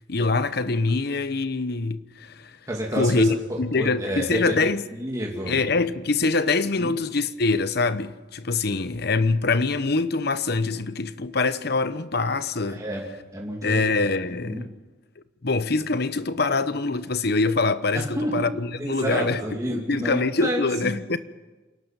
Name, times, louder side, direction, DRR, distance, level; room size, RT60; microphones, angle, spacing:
voice 1, 0.1-2.6 2.9-4.9 5.4-12.8 13.6-14.7 15.4-19.4 19.7-21.2, left 3 dB, 55° left, 1.0 m, -24 dB
voice 2, 2.7-4.5 4.9-5.6 6.8-6.9 12.7-13.0 13.3-13.8 14.4-14.6 17.9-18.3 18.8-21.0, equal, 20° right, 2.7 m, -30 dB
28.0 x 12.0 x 9.2 m
head